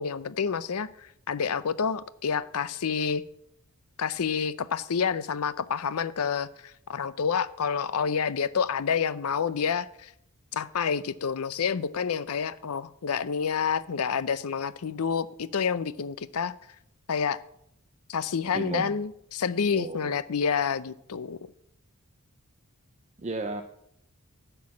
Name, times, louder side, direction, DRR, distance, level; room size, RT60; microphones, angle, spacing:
voice 1, 0.0-3.2 4.0-10.1 10.5-16.5 17.1-17.4 18.1-21.4, left 6 dB, 70° left, 16 dB, 0.5 m, -28 dB
voice 2, 18.5-19.0 19.7-20.1 23.2-23.6, right 3 dB, 30° right, 7 dB, 0.6 m, -33 dB
11.5 x 4.6 x 8.4 m, 0.73 s
head